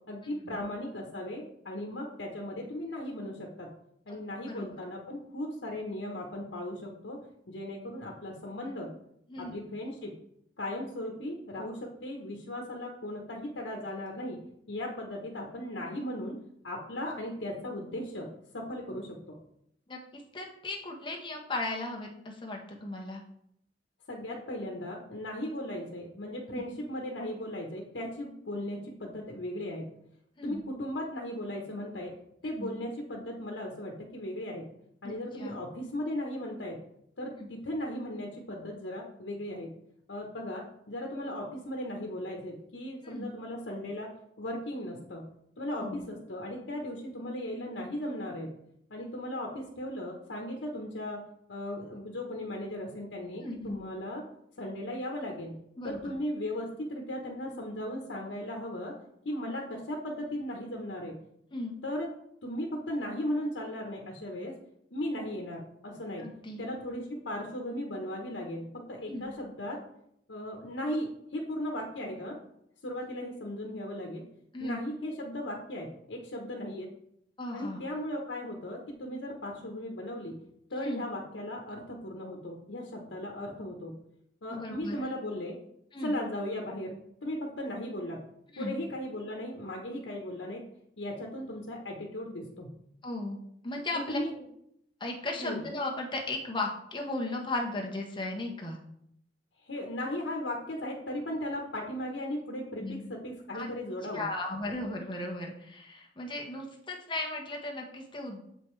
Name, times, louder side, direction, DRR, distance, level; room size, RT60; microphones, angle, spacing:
voice 1, 0.1-3.7 4.1-7.2 7.5-8.9 9.4-10.2 10.6-14.4 14.7-16.4 16.6-19.4 24.1-29.9 30.4-32.1 32.4-34.7 35.0-36.8 37.2-39.7 40.1-44.1 44.4-45.3 45.6-48.5 48.9-51.2 51.5-54.2 54.6-55.6 55.8-59.0 59.2-61.2 61.8-62.1 62.4-64.5 64.9-66.3 66.6-69.8 70.3-72.4 72.8-74.2 74.6-76.9 77.5-80.4 80.7-84.0 84.4-85.6 86.0-88.2 88.6-90.6 91.0-92.7 93.9-94.4 95.4-95.6 99.6-104.2, left 1 dB, 90° left, 1 dB, 1.0 m, -37 dB
voice 2, 19.9-23.2 26.5-26.6 30.4-30.6 32.6-32.8 35.4-35.6 37.4-37.5 43.0-43.3 45.8-46.0 53.4-53.8 55.8-56.0 61.5-61.8 66.2-66.6 69.0-69.3 74.5-74.8 77.4-77.8 80.8-81.1 84.5-85.0 85.9-86.2 88.5-88.8 93.0-94.2 95.0-98.8 102.8-103.1 103.5-103.7 104.1-108.4, left 2 dB, 25° left, 0 dB, 1.1 m, -36 dB
7.5 x 5.2 x 3.2 m, 0.75 s
head